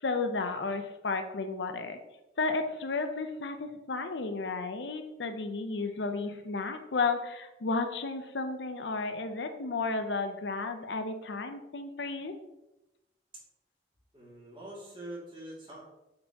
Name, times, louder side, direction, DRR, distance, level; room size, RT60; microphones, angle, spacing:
voice 1, 0.0-2.0 2.4-12.3, left 3 dB, 85° left, 7 dB, 0.7 m, -33 dB
voice 2, 14.1-15.8, right 1 dB, 25° right, -6 dB, 2.4 m, -44 dB
8.6 x 4.4 x 2.9 m, 0.94 s
head